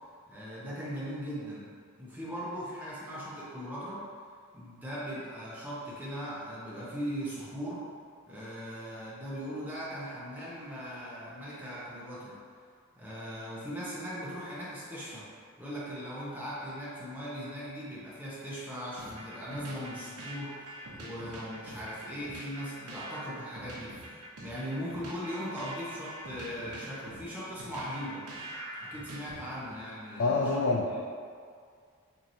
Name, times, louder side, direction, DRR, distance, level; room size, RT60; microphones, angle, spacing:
voice 1, 0.3-1.7 2.0-4.1 4.5-7.9 8.3-12.4 13.0-15.3 15.6-28.3 28.8-31.0, equal, 10° right, -9 dB, 0.7 m, -39 dB
sound 1, 19.0-29.8, right 1 dB, 85° right, 0.7 m, -45 dB
voice 2, 30.2-31.0, left 3 dB, 55° left, -2 dB, 0.3 m, -27 dB
4.5 x 2.9 x 2.6 m, 2.1 s
head